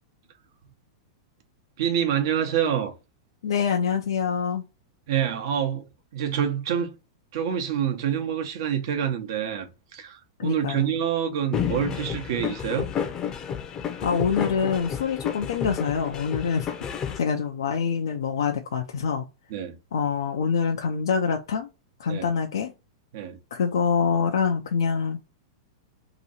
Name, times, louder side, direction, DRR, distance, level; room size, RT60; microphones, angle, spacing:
voice 1, 1.8-2.9 5.1-5.9 6.1-6.9 7.3-9.7 9.9-12.9 19.5-19.8 22.1-22.3 23.1-23.4, right 9 dB, 60° right, 0.9 m, -26 dB
voice 2, 3.4-4.6 10.4-10.9 14.0-16.7 17.1-19.3 19.9-21.7 22.0-22.7 23.5-25.2, left 6 dB, 80° left, 0.5 m, -25 dB
sound 1, 11.5-17.2, left 8 dB, 25° left, 0.6 m, -31 dB
3.0 x 2.6 x 4.0 m
hypercardioid pair, 120°, 2 cm